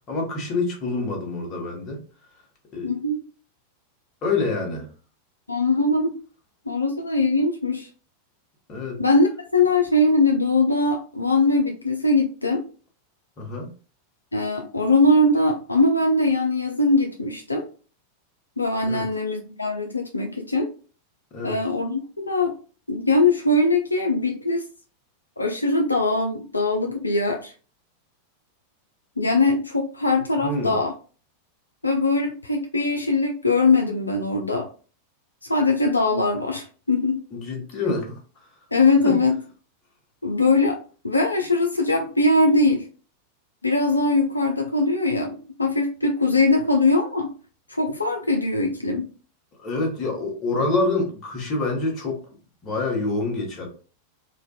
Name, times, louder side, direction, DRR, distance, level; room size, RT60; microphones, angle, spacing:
voice 1, 0.1-2.0 2.7-2.9 4.2-4.9 8.7-9.0 13.4-13.7 18.8-19.1 21.3-21.6 30.4-30.8 37.3-38.2 39.0-39.1 49.6-52.2 52.6-53.7, left 3 dB, 30° left, 0 dB, 0.9 m, -26 dB
voice 2, 2.8-3.2 5.5-6.1 6.7-7.9 9.0-12.6 14.3-17.6 18.6-20.7 21.4-22.5 22.9-24.6 25.4-27.5 29.2-30.9 31.8-34.7 35.4-37.2 38.7-39.4 40.2-40.8 41.0-42.8 43.6-47.3 47.7-49.1, left 2 dB, 80° left, 2 dB, 0.3 m, -21 dB
2.5 x 2.2 x 2.2 m, 0.38 s
figure-of-eight pair, 90°, 0 cm